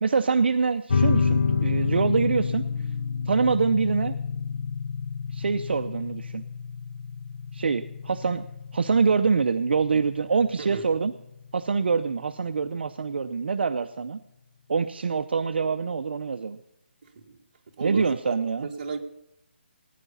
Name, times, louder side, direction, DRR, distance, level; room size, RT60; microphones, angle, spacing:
voice 1, 0.0-2.6 3.3-4.2 5.3-6.4 7.5-8.4 8.7-11.1 11.5-14.2 14.7-16.6 17.8-18.7, right 5 dB, 60° right, 8 dB, 0.6 m, -25 dB
sound 1, 0.9-11.9, left 5 dB, 50° left, 0.9 m, -29 dB
voice 2, 17.0-17.4 17.8-18.4 18.6-19.0, right 4 dB, 40° right, 0 dB, 1.9 m, -34 dB
19.0 x 10.0 x 5.5 m, 0.86 s
hypercardioid pair, 170°, 6 cm